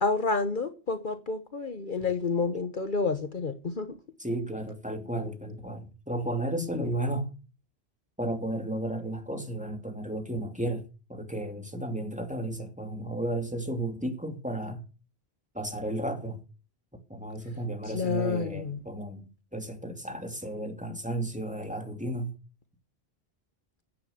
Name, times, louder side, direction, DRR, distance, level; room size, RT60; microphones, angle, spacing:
voice 1, 0.0-4.0 17.9-18.8, left 4 dB, 50° left, 1.3 m, -29 dB
voice 2, 4.2-7.3 8.2-14.8 15.5-16.4 17.1-22.3, right 1 dB, 5° right, 2.8 m, -33 dB
16.0 x 10.0 x 6.7 m
omnidirectional pair, 1.1 m